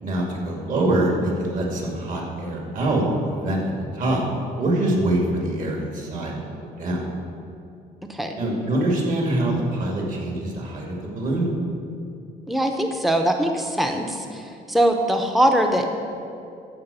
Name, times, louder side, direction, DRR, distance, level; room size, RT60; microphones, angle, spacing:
voice 1, 0.0-3.6 3.9-4.2 4.5-7.0 8.3-11.5, right 1 dB, 50° right, -1 dB, 2.5 m, -24 dB
voice 2, 12.5-14.4 14.7-15.9, right 1 dB, ahead, 4 dB, 0.8 m, -21 dB
14.0 x 4.6 x 6.9 m, 2.5 s
cardioid pair, 110°, 17 cm